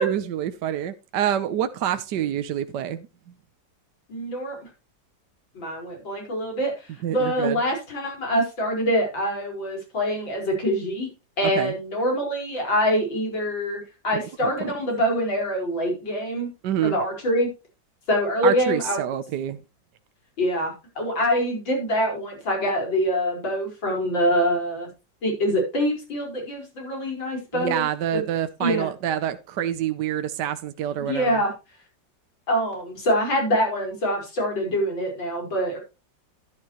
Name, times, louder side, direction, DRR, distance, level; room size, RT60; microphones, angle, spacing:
voice 1, 0.0-3.0 7.0-7.6 11.4-11.7 14.4-14.7 16.6-17.0 18.4-19.6 27.5-31.4, right 10 dB, 70° right, 1.3 m, -27 dB
voice 2, 4.1-4.7 5.6-11.1 11.4-16.5 16.8-17.5 18.1-19.0 20.4-24.9 25.2-27.9 28.1-28.2 28.6-28.9 31.1-31.5 32.5-35.8, equal, 85° left, 5.6 m, -25 dB
11.5 x 11.0 x 3.0 m
omnidirectional pair, 2.0 m